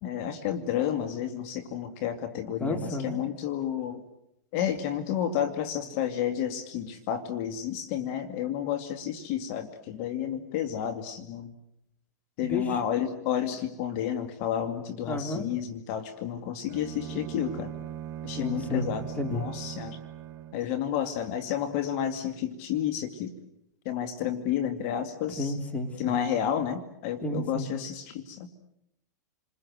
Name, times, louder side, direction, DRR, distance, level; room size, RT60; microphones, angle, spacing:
voice 1, 0.0-4.0 4.5-11.5 12.4-17.7 18.2-19.0 19.3-20.0 20.5-23.3 23.8-25.5 26.0-28.5, left 9 dB, 50° left, 8 dB, 2.3 m, -31 dB
voice 2, 2.6-3.2 12.4-12.8 15.0-15.5 18.4-18.9 19.1-19.4 25.4-26.2 27.2-27.7, left 1 dB, 15° left, 6 dB, 3.4 m, -32 dB
Bowed string instrument, 16.7-20.7, right 10 dB, 35° right, 3.4 m, -39 dB
30.0 x 21.0 x 7.9 m, 0.79 s
hypercardioid pair, 115°, 10 cm